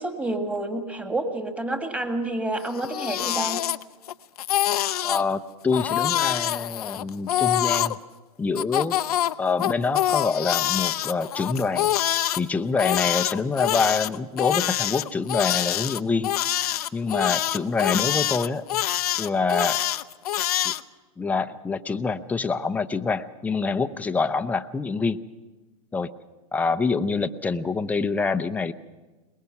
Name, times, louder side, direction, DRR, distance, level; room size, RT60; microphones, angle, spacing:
voice 1, 0.0-3.6, right 2 dB, 5° right, 6 dB, 1.8 m, -29 dB
Crying sobbing, 2.7-4.1 4.4-5.2 5.7-7.9 8.5-12.4 12.8-20.8, left 12 dB, 80° left, 0.6 m, -25 dB
voice 2, 5.0-8.0 8.4-9.0 9.4-11.9 12.4-16.3 16.9-18.8 19.2-19.8 20.6-20.7 21.2-25.2 25.9-26.1 26.5-28.7, left 4 dB, 10° left, 8 dB, 0.6 m, -26 dB
22.5 x 20.5 x 5.8 m, 1.2 s
hypercardioid pair, 125°, 19 cm